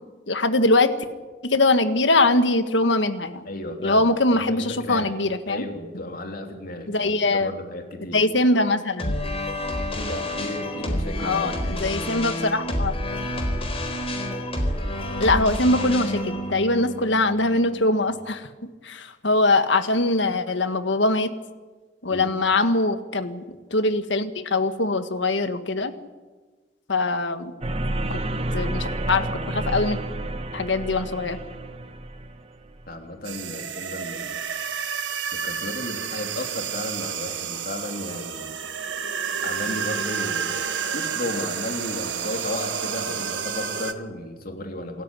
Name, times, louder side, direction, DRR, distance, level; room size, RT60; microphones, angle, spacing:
voice 1, 0.3-0.9 1.4-3.4 3.8-5.6 6.9-7.5 8.1-9.1 11.2-12.9 15.2-18.4 18.8-21.3 22.0-23.4 23.7-25.9 26.9-27.5 28.1-28.2 28.5-30.0 30.5-31.4, left 2 dB, 80° left, 10 dB, 1.6 m, -22 dB
voice 2, 3.4-5.1 5.5-8.2 10.0-12.0 22.1-22.3 32.9-34.3 35.3-38.5 39.4-40.7 40.9-45.0, left 1 dB, 55° left, 4 dB, 3.4 m, -34 dB
sound 1, 9.0-18.2, left 1 dB, 35° left, 4.1 m, -29 dB
sound 2, 27.6-32.9, right 1 dB, 35° right, 1.4 m, -30 dB
sound 3, 33.2-43.9, right 7 dB, 80° right, 1.6 m, -30 dB
27.5 x 14.0 x 9.9 m, 1.3 s
head